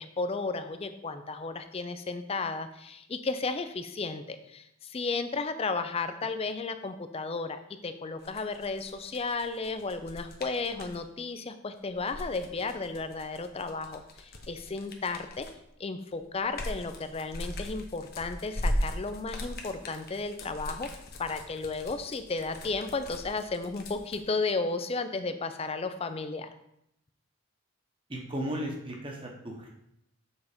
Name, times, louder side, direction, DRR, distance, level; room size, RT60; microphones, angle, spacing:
voice 1, 0.0-15.5 15.8-20.9 21.2-26.5, left 3 dB, 25° left, 10 dB, 0.4 m, -34 dB
sound 1, 8.2-11.0 11.9-15.7 16.1-24.2, left 1 dB, 45° left, 0.9 m, -38 dB
voice 2, 28.1-29.7, equal, 25° right, 1 dB, 1.1 m, -35 dB
7.0 x 4.0 x 5.1 m, 0.80 s
head